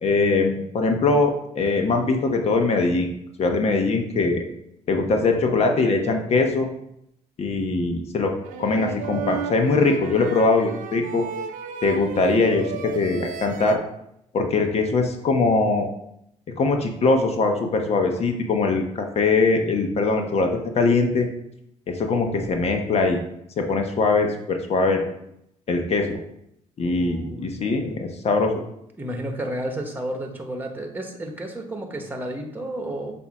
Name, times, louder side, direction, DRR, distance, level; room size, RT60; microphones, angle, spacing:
voice 1, 0.0-3.1 3.4-4.4 4.9-6.7 7.4-8.3 8.6-11.2 11.8-13.8 14.3-15.9 16.6-21.3 21.9-23.2 23.6-25.1 25.7-26.2 26.8-28.6, left 3 dB, 50° left, 3 dB, 1.1 m, -21 dB
sound 1, 8.4-13.7, right 7 dB, 75° right, 0.6 m, -34 dB
voice 2, 26.8-27.8 29.0-33.1, right 1 dB, 15° right, 3 dB, 1.3 m, -32 dB
6.9 x 2.8 x 4.8 m, 0.77 s
supercardioid pair, 70°, 14 cm